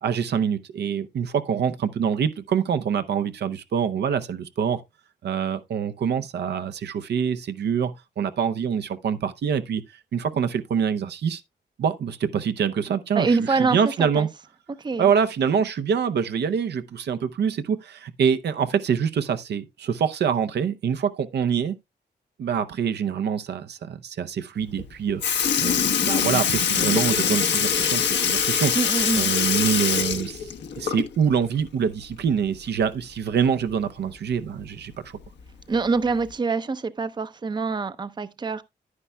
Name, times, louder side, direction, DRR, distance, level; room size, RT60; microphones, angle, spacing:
voice 1, 0.0-4.8 5.2-9.8 10.1-11.4 11.8-14.3 15.0-21.8 22.4-28.7 29.1-35.2, right 7 dB, 70° right, 0.6 m, -25 dB
voice 2, 13.2-14.3 14.8-15.1 28.7-29.3 35.7-38.6, right 4 dB, 25° right, 0.6 m, -25 dB
Sink (filling or washing) / Liquid, 24.8-24.9 25.2-31.3 31.7-31.8 33.3-33.4 34.3-34.4 35.2-35.5 36.3-36.4, left 7 dB, 85° left, 1.1 m, -23 dB
10.0 x 9.7 x 2.2 m
cardioid pair, 75°, 18 cm